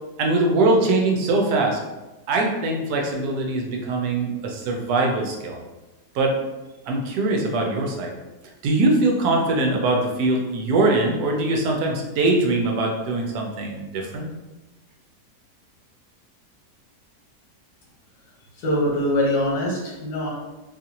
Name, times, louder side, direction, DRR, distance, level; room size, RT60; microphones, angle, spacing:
voice 1, 0.2-1.8 2.3-5.6 6.1-6.4 6.9-8.1 8.6-14.3, right 2 dB, 85° right, 1 dB, 1.2 m, -22 dB
voice 2, 18.6-20.3, left 1 dB, 85° left, -3 dB, 1.5 m, -23 dB
4.1 x 2.4 x 2.8 m, 1.1 s
omnidirectional pair, 1.7 m